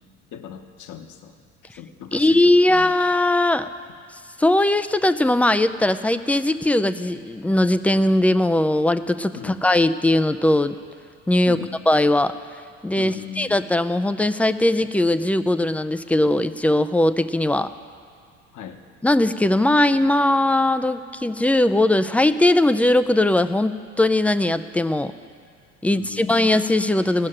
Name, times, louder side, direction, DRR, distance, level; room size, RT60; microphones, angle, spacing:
voice 1, 0.3-1.3 1.6-2.9 9.3-9.7 11.4-11.8 13.0-13.6 18.5-18.8 25.9-26.5, left 9 dB, 45° left, 6 dB, 1.1 m, -38 dB
voice 2, 2.1-3.7 4.4-10.8 11.3-11.6 11.9-12.4 12.8-17.7 19.0-25.1 25.8-27.3, left 1 dB, 5° left, 11 dB, 0.3 m, -19 dB
16.5 x 6.4 x 9.9 m, 2.2 s
hypercardioid pair, 70°, 41 cm